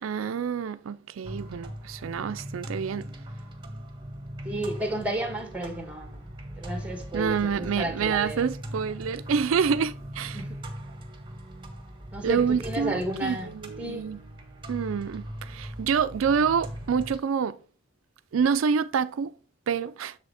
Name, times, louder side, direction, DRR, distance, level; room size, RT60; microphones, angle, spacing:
voice 1, 0.0-3.1 7.1-10.4 12.2-14.2 14.7-17.6 18.3-19.3 19.7-20.2, right 6 dB, 85° right, 0.4 m, -27 dB
sound 1, 1.2-17.2, right 1 dB, 25° right, 1.4 m, -40 dB
voice 2, 4.4-6.3 6.6-8.5 10.3-10.6 12.1-13.5 13.8-14.1, right 1 dB, 5° right, 1.6 m, -32 dB
7.4 x 6.3 x 3.4 m
head